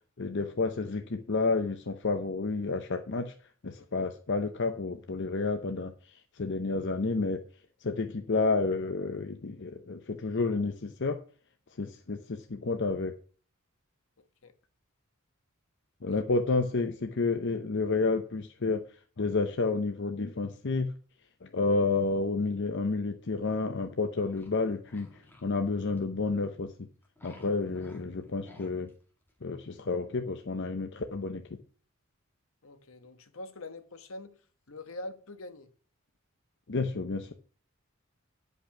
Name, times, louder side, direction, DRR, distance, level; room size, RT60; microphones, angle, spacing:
voice 1, 0.2-3.3 3.6-5.9 6.4-7.4 7.8-11.2 11.8-13.1 16.0-18.8 19.2-20.9 21.4-25.1 25.4-26.7 27.2-28.9 29.4-31.4 36.7-37.3, left 3 dB, 60° left, 0.8 m, -30 dB
sound 1, 23.4-25.6 26.0-26.2 27.0-28.9 29.3-29.4, left 2 dB, 10° left, 2.1 m, -54 dB
voice 2, 32.6-34.3 34.7-35.7, left 2 dB, 75° left, 1.2 m, -44 dB
10.5 x 5.4 x 5.9 m
head